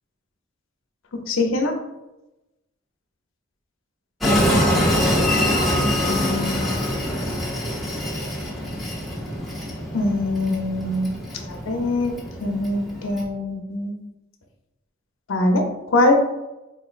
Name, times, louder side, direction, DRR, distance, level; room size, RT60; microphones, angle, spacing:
voice 1, 1.3-1.7 5.7-6.8 9.9-11.1 11.5-13.9 15.3-16.1, left 2 dB, 70° left, 3 dB, 0.6 m, -23 dB
Train, 4.2-13.2, left 1 dB, ahead, 0.8 m, -24 dB
4.1 x 3.0 x 2.4 m, 0.98 s
head